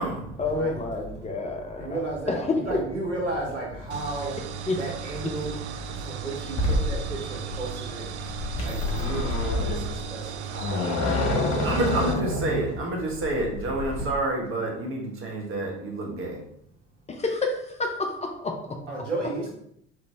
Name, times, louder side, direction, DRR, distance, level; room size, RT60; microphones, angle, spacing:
voice 1, 0.4-2.6 4.7-4.8 5.2-5.3 17.1-18.8, left 3 dB, 20° left, 2 dB, 0.7 m, -29 dB
voice 2, 1.8-4.4 4.8-5.6 5.9-8.1 8.6-10.8 11.9-12.1 18.9-19.5, right 2 dB, 90° right, -3 dB, 1.2 m, -33 dB
sound 1, 3.9-12.2, right 7 dB, 70° right, 0.5 m, -36 dB
sound 2, 6.5-14.0, left 2 dB, 45° left, 1.3 m, -28 dB
voice 3, 11.6-16.4, right 2 dB, 35° right, 0 dB, 1.4 m, -28 dB
4.1 x 3.1 x 3.4 m, 0.72 s
figure-of-eight pair, 65°, 35 cm